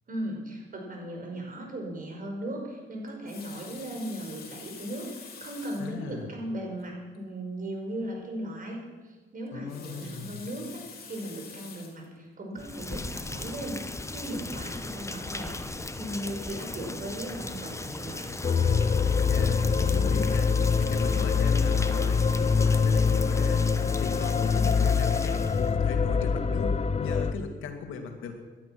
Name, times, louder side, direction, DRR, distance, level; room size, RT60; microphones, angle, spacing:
voice 1, 0.1-8.8 9.0-13.8 14.1-18.3, right 1 dB, 45° right, 1 dB, 5.4 m, -37 dB
Water tap faucet, 3.1-6.0 6.8-6.9 7.1-7.2 9.5-12.1 12.7-12.9, left 6 dB, 50° left, 3.4 m, -47 dB
voice 2, 5.8-6.3 9.5-10.4 19.3-20.5 20.8-28.3, left 5 dB, 80° left, 4 dB, 2.3 m, -38 dB
Rain, 12.5-25.7, left 2 dB, 15° left, 1.0 m, -37 dB
sound 1, 18.4-27.3, left 5 dB, 30° left, 0.7 m, -24 dB
18.0 x 12.0 x 6.0 m, 1.3 s
cardioid pair, 90°, 20 cm